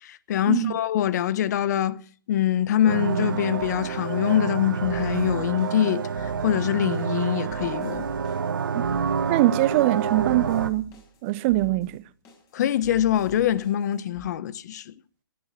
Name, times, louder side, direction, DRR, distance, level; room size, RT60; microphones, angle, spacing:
voice 1, 0.0-2.0 2.3-8.1 12.5-14.9, left 11 dB, 50° left, 1.1 m, -24 dB
sound 1, 2.9-10.7, right 6 dB, 70° right, 1.4 m, -28 dB
sound 2, 3.6-14.3, left 2 dB, 25° left, 6.6 m, -49 dB
voice 2, 9.3-10.9 11.2-12.0, right 17 dB, 35° right, 0.9 m, -22 dB
21.0 x 10.5 x 6.0 m
hypercardioid pair, 135°, 12 cm